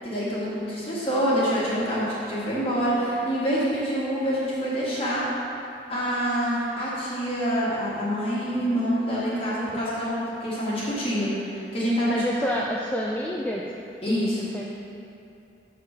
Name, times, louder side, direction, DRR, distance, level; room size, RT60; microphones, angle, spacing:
voice 1, 0.0-5.2 5.9-12.5 14.0-14.4, equal, 30° left, -8 dB, 2.0 m, -26 dB
voice 2, 12.1-13.7 14.1-14.3 14.5-14.6, equal, 10° left, -3 dB, 0.4 m, -28 dB
7.0 x 4.4 x 6.7 m, 2.7 s
head